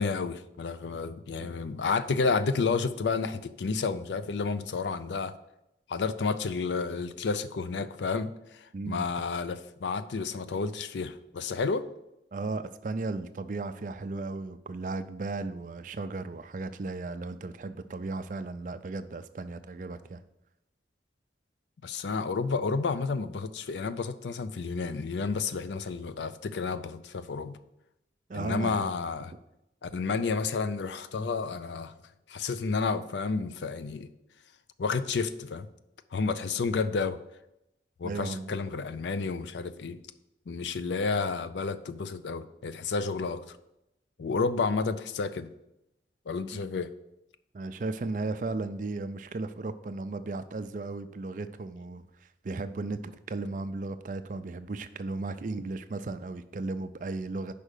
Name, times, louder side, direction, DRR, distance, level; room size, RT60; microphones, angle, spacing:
voice 1, 0.0-5.3 5.9-11.9 21.8-27.6 28.3-29.3 29.8-31.9 32.3-34.1 34.8-35.7 36.1-37.2 38.0-40.0 40.5-43.6 44.2-45.5 46.3-46.9, left 4 dB, 85° left, 13 dB, 0.4 m, -31 dB
voice 2, 8.7-9.1 12.3-20.2 28.3-28.9 38.0-38.5 46.5-46.6 47.5-52.0 52.4-57.5, right 3 dB, 45° right, 10 dB, 0.4 m, -35 dB
5.4 x 5.0 x 6.4 m, 0.88 s
head